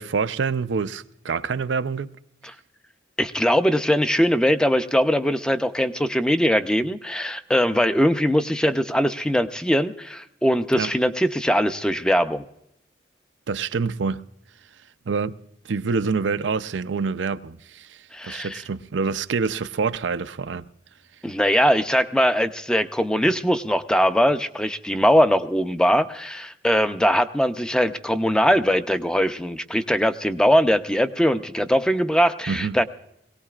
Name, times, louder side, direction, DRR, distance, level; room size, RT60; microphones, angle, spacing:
voice 1, 0.0-2.1 10.8-10.9 13.5-14.2 15.1-15.4 15.7-20.7 32.5-32.8, right 5 dB, 80° right, 0.5 m, -26 dB
voice 2, 3.2-12.4 18.1-18.6 21.2-32.8, equal, 5° left, 0.6 m, -21 dB
22.0 x 18.0 x 2.4 m
head